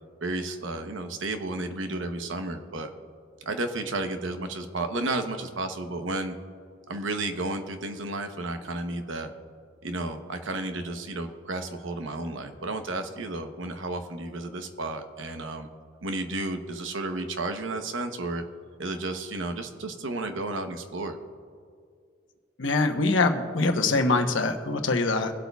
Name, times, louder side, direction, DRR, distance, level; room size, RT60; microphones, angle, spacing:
voice 1, 0.2-2.9 3.4-6.4 6.9-9.3 9.8-15.7 16.0-18.4 18.8-21.2, right 2 dB, 70° right, 7 dB, 0.9 m, -32 dB
voice 2, 22.6-25.3, left 3 dB, 70° left, 5 dB, 1.0 m, -24 dB
24.0 x 8.1 x 2.3 m, 2.2 s
head